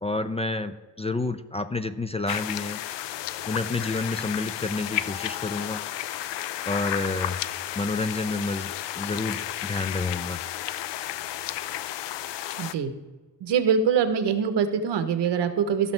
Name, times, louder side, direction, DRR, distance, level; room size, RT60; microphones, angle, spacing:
voice 1, 0.0-2.8 3.5-5.8 6.6-7.4 7.8-8.7 9.0-10.4, left 3 dB, 15° left, 10 dB, 0.3 m, -29 dB
sound 1, 2.3-12.7, left 13 dB, 85° left, 0.5 m, -32 dB
voice 2, 12.6-12.9 13.4-15.9, right 7 dB, 85° right, 9 dB, 1.1 m, -24 dB
15.5 x 6.1 x 3.4 m, 1.3 s
cardioid pair, 105°, 41 cm